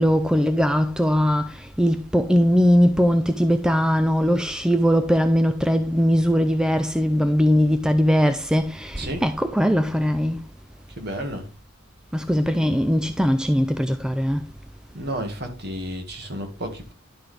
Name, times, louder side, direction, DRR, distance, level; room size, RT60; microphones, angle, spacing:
voice 1, 0.0-10.4 12.1-14.4, equal, 5° right, 0.4 m, -20 dB
voice 2, 9.0-9.3 11.0-11.5 14.9-16.9, equal, 50° right, 1.9 m, -32 dB
11.0 x 5.9 x 3.3 m
head